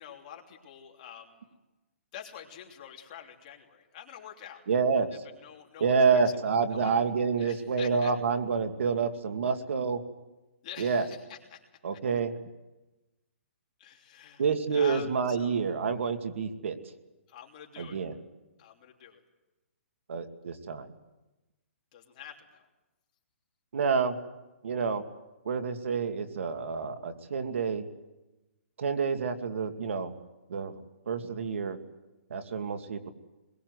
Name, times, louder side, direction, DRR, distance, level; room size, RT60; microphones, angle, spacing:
voice 1, 0.0-1.6 2.1-4.6 5.0-6.2 6.7-7.0 7.4-8.1 10.6-11.6 11.9-12.0 13.8-14.4 14.7-15.8 17.3-18.0 18.6-19.2 21.9-22.6, left 9 dB, 30° left, 0 dB, 3.2 m, -47 dB
voice 2, 4.7-5.1 5.8-10.0 10.8-11.0 11.8-12.4 14.4-16.8 17.8-18.1 20.1-20.9 23.7-24.2 24.6-25.0 25.5-27.9 28.8-30.1 30.5-30.7 31.1-31.8 32.3-33.1, right 5 dB, 65° right, 7 dB, 2.3 m, -28 dB
24.5 x 22.0 x 8.1 m, 1.1 s
hypercardioid pair, 170°, 7 cm